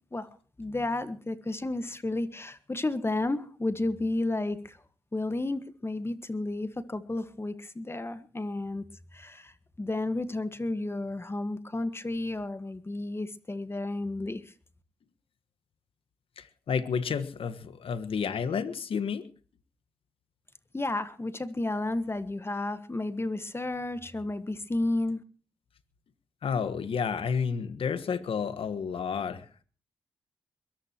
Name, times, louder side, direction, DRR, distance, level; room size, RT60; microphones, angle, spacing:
voice 1, 0.6-4.8 5.1-8.8 9.1-14.5 20.7-25.2, left 2 dB, 25° left, 13 dB, 1.6 m, -32 dB
voice 2, 16.4-19.3 26.4-29.6, left 6 dB, 70° left, 11 dB, 1.5 m, -31 dB
22.0 x 18.0 x 3.0 m, 0.38 s
supercardioid pair, 50°, 10 cm